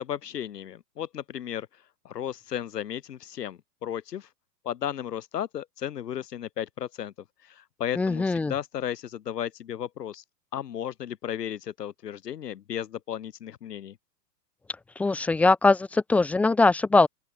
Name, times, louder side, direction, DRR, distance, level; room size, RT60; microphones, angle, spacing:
voice 1, 0.0-1.7 2.1-4.3 4.6-7.1 7.4-10.2 10.5-14.0, left 10 dB, 70° left, 7.1 m, -34 dB
voice 2, 8.0-8.5 15.0-17.1, left 3 dB, 5° left, 0.4 m, -21 dB
open air
hypercardioid pair, 110°, 50 cm